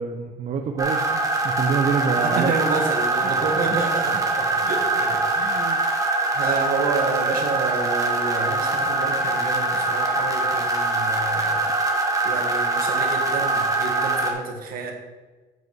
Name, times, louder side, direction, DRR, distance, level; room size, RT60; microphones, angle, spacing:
voice 1, 0.0-2.5 3.2-3.3 4.1-4.2 5.4-5.8, right 6 dB, 45° right, 4 dB, 0.6 m, -27 dB
sound 1, 0.8-14.3, right 2 dB, 20° right, 1.3 m, -23 dB
voice 2, 2.1-6.0 6.3-11.7 12.2-14.9, right 4 dB, 60° right, 3 dB, 1.6 m, -29 dB
7.8 x 5.4 x 4.6 m, 1.3 s
cardioid pair, 110°, 17 cm